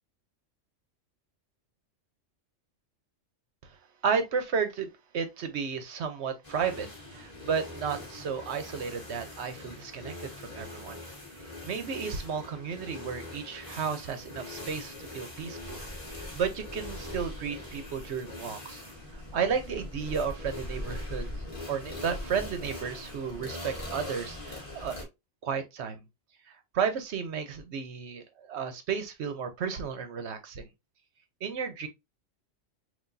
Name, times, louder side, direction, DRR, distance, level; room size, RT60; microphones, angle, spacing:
voice 1, 4.0-11.0 11.3-18.8 19.1-21.3 21.7-25.0 25.4-26.0 26.5-30.7 31.4-31.9, right 6 dB, 65° right, 1.0 m, -33 dB
sound 1, 6.4-25.0, left 1 dB, 25° left, 1.5 m, -41 dB
5.7 x 2.6 x 2.6 m
omnidirectional pair, 1.3 m